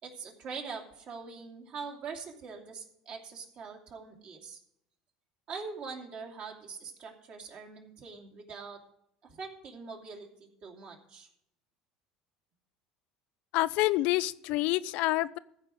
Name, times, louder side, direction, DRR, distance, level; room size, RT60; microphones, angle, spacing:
voice 1, 0.0-4.6 5.5-8.8 9.2-11.3, right 5 dB, 55° right, 1 dB, 2.7 m, -43 dB
voice 2, 13.5-15.4, left 17 dB, 65° left, 17 dB, 0.4 m, -27 dB
14.5 x 4.8 x 8.9 m, 0.76 s
hypercardioid pair, 75°, 2 cm